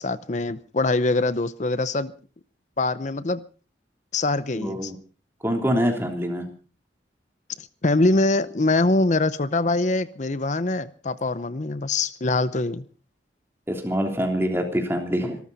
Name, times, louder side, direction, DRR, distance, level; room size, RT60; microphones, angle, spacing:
voice 1, 0.0-2.1 2.8-3.4 4.1-4.9 7.6-12.8, left 2 dB, 40° left, 15 dB, 0.7 m, -23 dB
voice 2, 4.5-4.9 5.4-6.4 13.7-15.4, equal, 15° right, 3 dB, 3.3 m, -25 dB
26.0 x 13.5 x 4.1 m, 0.38 s
head